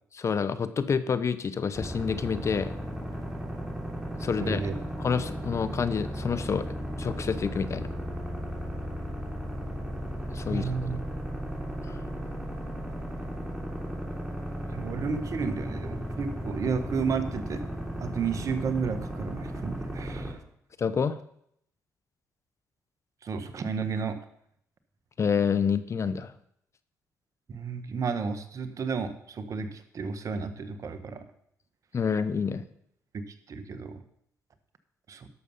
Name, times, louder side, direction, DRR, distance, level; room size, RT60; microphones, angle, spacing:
voice 1, 0.2-2.7 4.2-4.6 5.0-6.7 7.0-7.9 10.3-10.7 11.9-12.0 20.8-21.2 25.2-26.3 31.9-32.6, left 6 dB, 45° left, 13 dB, 0.8 m, -28 dB
sound 1, 1.7-20.3, equal, 10° right, 3.7 m, -35 dB
voice 2, 4.4-4.7 10.5-11.0 14.7-17.6 18.0-20.4 23.2-24.2 27.5-31.2 33.1-34.0 35.1-35.3, right 5 dB, 55° right, 10 dB, 1.3 m, -32 dB
11.5 x 6.9 x 5.6 m, 0.71 s
supercardioid pair, 60°, 7 cm